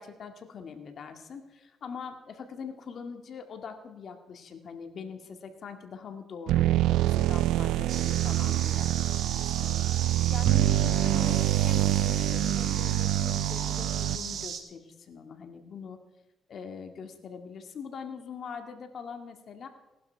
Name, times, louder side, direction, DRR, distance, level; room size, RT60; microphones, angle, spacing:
voice 1, 0.0-16.0 16.5-19.7, left 6 dB, 55° left, 6 dB, 2.0 m, -42 dB
sound 1, 6.5-14.4, right 14 dB, 90° right, 0.3 m, -26 dB
sound 2, 7.9-14.6, right 7 dB, 65° right, 1.9 m, -36 dB
18.5 x 11.5 x 4.6 m, 1.1 s
cardioid pair, 90°, 0 cm